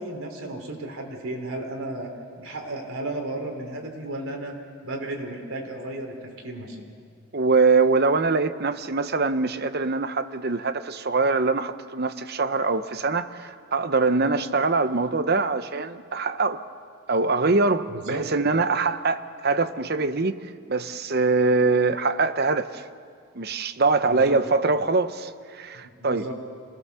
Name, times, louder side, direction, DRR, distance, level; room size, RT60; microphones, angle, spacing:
voice 1, 0.0-2.1 2.4-4.5 4.8-6.8 17.9-18.2 24.0-24.4 25.7-26.3, right 1 dB, 75° right, 3.7 m, -34 dB
voice 2, 7.3-16.6 17.1-20.4 20.7-22.8 23.3-26.3, right 3 dB, 45° right, 0.8 m, -23 dB
26.5 x 18.5 x 6.9 m
head